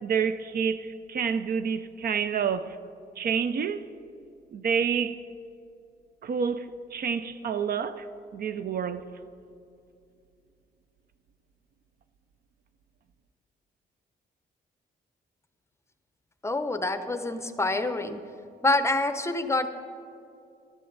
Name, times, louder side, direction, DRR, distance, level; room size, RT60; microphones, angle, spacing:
voice 1, 0.0-2.8 3.2-3.9 4.5-5.2 6.2-8.1 8.3-9.0, right 7 dB, 60° right, 0.5 m, -28 dB
voice 2, 16.4-18.2 18.6-19.7, left 2 dB, 15° left, 0.7 m, -26 dB
12.5 x 10.0 x 3.9 m
cardioid pair, 90°, 18 cm